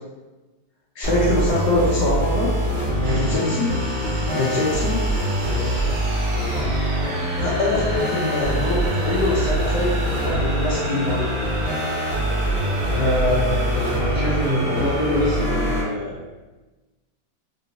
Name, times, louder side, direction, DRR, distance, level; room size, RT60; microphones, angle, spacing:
voice 1, 1.0-2.6 3.1-3.8 4.3-5.0 7.4-11.4, left 2 dB, 75° left, -4 dB, 1.0 m, -23 dB
sound 1, 1.0-15.8, right 1 dB, 10° left, 1.1 m, -24 dB
voice 2, 3.0-3.5 4.3-4.6 5.4-5.9 12.9-16.1, left 1 dB, 15° right, -10 dB, 0.8 m, -25 dB
sound 2, 3.0-15.9, right 1 dB, 80° right, 0.4 m, -33 dB
3.7 x 2.5 x 2.7 m, 1.2 s
omnidirectional pair, 2.1 m